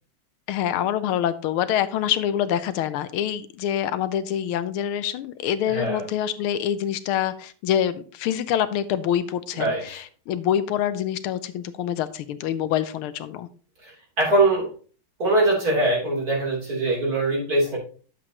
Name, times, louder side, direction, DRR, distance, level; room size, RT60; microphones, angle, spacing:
voice 1, 0.5-13.5, left 10 dB, 90° left, 13 dB, 1.6 m, -26 dB
voice 2, 5.7-6.0 9.5-10.0 13.8-14.7 15.2-17.8, right 2 dB, 45° right, -3 dB, 3.8 m, -22 dB
9.7 x 7.4 x 2.9 m, 0.39 s
omnidirectional pair, 2.3 m